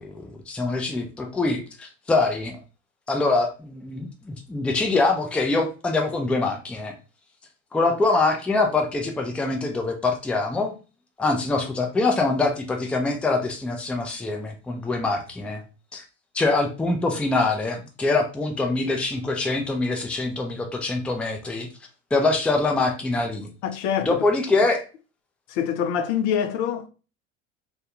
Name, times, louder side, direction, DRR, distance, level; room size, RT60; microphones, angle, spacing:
voice 1, 0.0-2.6 3.1-6.9 7.7-10.7 11.2-15.6 15.9-16.0 16.3-21.7 22.1-23.5 24.0-24.8, left 3 dB, 5° left, 0.4 m, -24 dB
voice 2, 23.6-24.2 25.5-26.9, left 8 dB, 55° left, 0.5 m, -25 dB
2.2 x 2.2 x 2.9 m
hypercardioid pair, 70°, 40 cm